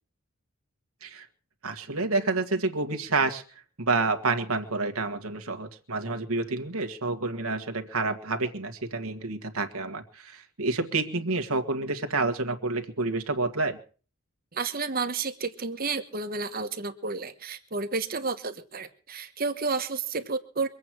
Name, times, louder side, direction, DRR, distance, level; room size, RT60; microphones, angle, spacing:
voice 1, 1.6-3.4 3.8-13.8, right 3 dB, 75° right, 6 dB, 1.9 m, -29 dB
voice 2, 14.5-20.7, right 4 dB, 40° right, 9 dB, 1.2 m, -31 dB
23.5 x 8.5 x 6.2 m, 0.41 s
head